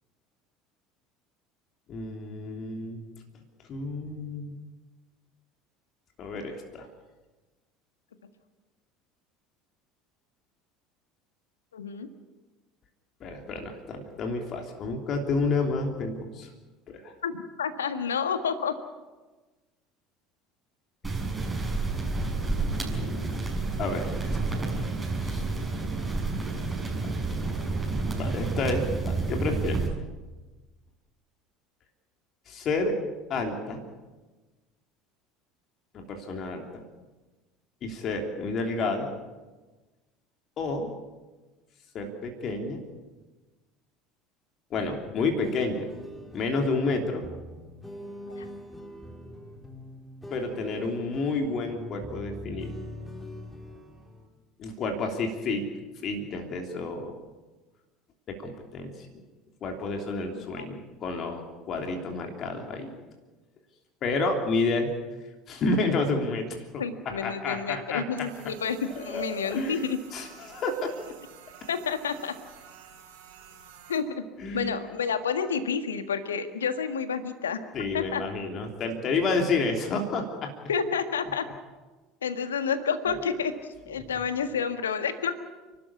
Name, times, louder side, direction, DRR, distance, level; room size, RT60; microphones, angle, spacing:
voice 1, 1.9-3.0 3.7-4.5 6.2-6.9 13.2-16.5 16.9-17.1 22.9-24.6 25.2-25.4 28.2-29.9 32.5-33.0 33.3-33.8 35.9-36.8 37.8-39.1 40.6-41.0 41.9-42.8 44.7-45.9 46.3-47.3 50.3-52.8 54.6-55.6 56.0-57.2 58.3-59.2 59.6-62.9 64.0-64.9 65.5-68.3 68.9-69.8 70.1-70.9 74.4-74.7 77.7-80.5, left 3 dB, 45° left, 3 dB, 3.1 m, -30 dB
voice 2, 11.7-12.1 17.2-18.7 48.3-48.4 60.3-60.7 66.8-70.0 71.7-72.3 73.9-74.2 74.5-77.6 77.9-78.2 80.7-81.5 82.2-83.5 83.9-85.3, left 6 dB, 75° left, 9 dB, 1.6 m, -29 dB
sound 1, 21.0-29.9, right 3 dB, 20° right, 6.7 m, -30 dB
sound 2, 44.8-54.3, left 1 dB, 5° left, 3.7 m, -43 dB
sound 3, 68.2-74.0, right 8 dB, 70° right, 3.4 m, -50 dB
30.0 x 13.0 x 8.4 m, 1.2 s
figure-of-eight pair, 65°, 0 cm